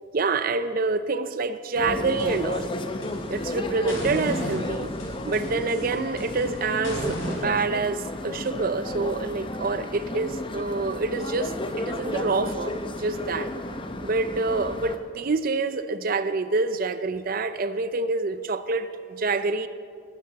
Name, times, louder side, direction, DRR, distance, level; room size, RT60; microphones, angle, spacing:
voice 1, 0.1-2.7 3.3-4.9 5.2-13.5 14.0-19.7, right 3 dB, 45° right, 12 dB, 0.5 m, -27 dB
sound 1, 1.8-15.0, left 1 dB, 25° left, 0.7 m, -33 dB
sound 2, 2.0-3.5 3.9-7.4, equal, 80° left, 3.8 m, -36 dB
19.5 x 12.0 x 4.0 m, 2.2 s
head